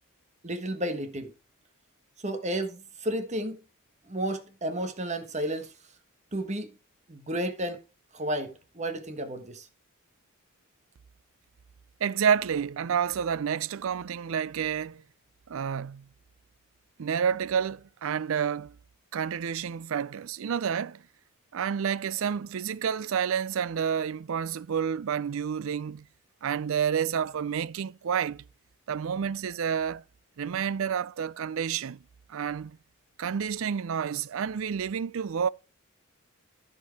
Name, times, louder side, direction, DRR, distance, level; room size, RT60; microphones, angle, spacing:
voice 1, 0.4-1.3 2.2-3.6 4.1-5.7 6.3-6.7 7.1-7.8 8.1-9.6, right 1 dB, 35° right, 1.4 m, -32 dB
voice 2, 12.0-15.0 15.5-16.1 17.0-18.7 19.1-21.0 21.5-26.0 26.4-28.4 28.9-30.0 30.4-32.0 32.3-32.8 33.2-35.5, right 7 dB, 65° right, 0.4 m, -29 dB
14.0 x 4.6 x 4.7 m
head